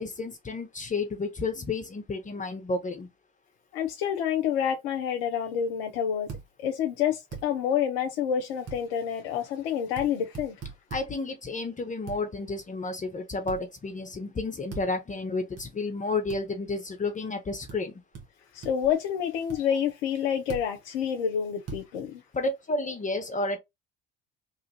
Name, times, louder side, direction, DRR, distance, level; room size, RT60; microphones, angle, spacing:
voice 1, 0.0-3.1 10.9-17.9 22.3-23.6, left 3 dB, 25° left, 0.8 m, -31 dB
voice 2, 3.7-6.3 6.6-10.6 18.5-22.2, left 8 dB, 70° left, 0.6 m, -28 dB
sound 1, 6.3-6.5 7.3-7.5 8.7-8.8 10.0-10.1 10.3-11.1 12.1-12.2 13.5-13.6 14.7-14.9 15.6-15.7 16.3-16.4 17.7-17.8 18.1-18.3 18.6-18.9 19.5-19.6 20.5-20.7 21.7-21.8, right 6 dB, 50° right, 1.4 m, -39 dB
3.0 x 2.4 x 2.7 m
figure-of-eight pair, 55°, 31 cm